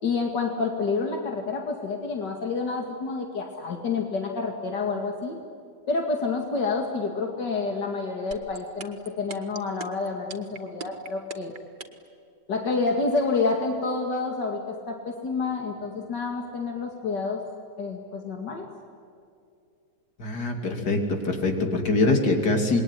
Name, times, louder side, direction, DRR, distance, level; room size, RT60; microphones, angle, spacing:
voice 1, 0.0-5.4 5.9-11.5 12.5-17.4 17.8-18.7, left 4 dB, 90° left, 3 dB, 2.8 m, -28 dB
sound 1, 8.3-12.1, right 5 dB, 80° right, 2.4 m, -38 dB
voice 2, 20.2-22.8, left 2 dB, 70° left, 4 dB, 3.5 m, -23 dB
27.0 x 21.5 x 10.0 m, 2.5 s
omnidirectional pair, 1.8 m